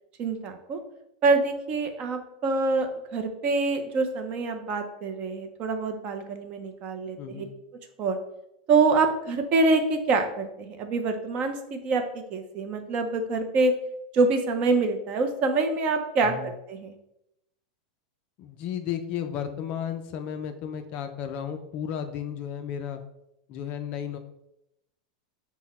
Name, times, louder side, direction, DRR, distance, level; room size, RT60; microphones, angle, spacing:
voice 1, 0.2-0.8 1.2-7.5 8.0-8.2 8.7-13.7 14.1-16.9, right 3 dB, 30° right, 6 dB, 0.5 m, -25 dB
voice 2, 7.2-7.5 16.2-16.5 18.4-23.0 23.5-24.2, left 8 dB, 35° left, 7 dB, 0.3 m, -33 dB
5.8 x 2.1 x 4.1 m, 0.83 s
supercardioid pair, 165°, 4 cm